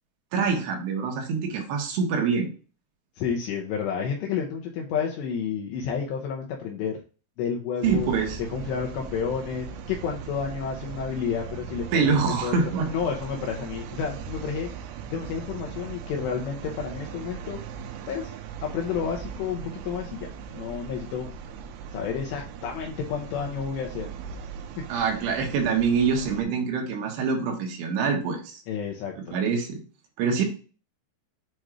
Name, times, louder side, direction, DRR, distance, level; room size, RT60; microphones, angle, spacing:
voice 1, 0.3-2.5 7.8-8.4 11.9-12.9 24.9-28.6 29.3-29.8 30.2-30.4, right 5 dB, 70° right, 2 dB, 3.1 m, -25 dB
voice 2, 3.2-7.0 7.4-8.1 8.5-12.5 12.9-14.7 15.1-17.6 18.1-18.3 18.6-20.3 20.5-21.3 21.9-24.1 24.8-24.9 28.7-29.4, left 7 dB, 80° left, 0 dB, 2.7 m, -30 dB
sound 1, 7.8-26.4, right 7 dB, 85° right, 3.2 m, -39 dB
7.7 x 2.6 x 4.7 m, 0.36 s
omnidirectional pair, 5.5 m